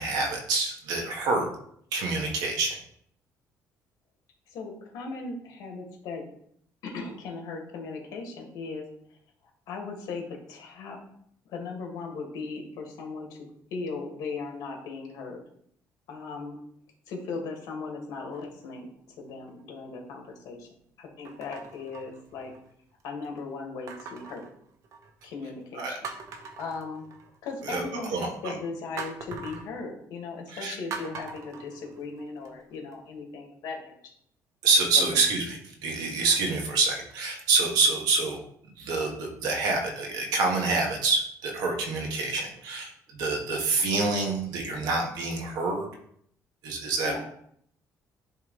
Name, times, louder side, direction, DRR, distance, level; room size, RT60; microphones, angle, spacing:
voice 1, 0.0-1.5 1.9-2.8 25.7-26.0 27.6-28.6 30.5-30.8 34.6-38.4 38.6-45.9 46.6-47.1, right 3 dB, 90° right, 2 dB, 1.5 m, -27 dB
voice 2, 4.5-6.2 6.8-8.8 9.7-11.0 11.5-13.4 13.7-15.4 16.1-16.6 17.1-18.9 19.2-20.7 21.0-22.5 23.0-24.5 25.2-26.0 26.6-27.0 27.4-34.0 35.0-35.1 47.0-47.2, left 4 dB, 75° left, 1 dB, 1.8 m, -37 dB
sound 1, 18.3-18.8 19.5-19.6 21.2-22.7 23.9-25.2 25.6-25.7 26.0-27.5 29.0-29.7 30.9-32.5 32.9-33.0, right 5 dB, 55° right, 0.8 m, -42 dB
10.5 x 3.5 x 3.1 m, 0.67 s
cardioid pair, 150°, 6 cm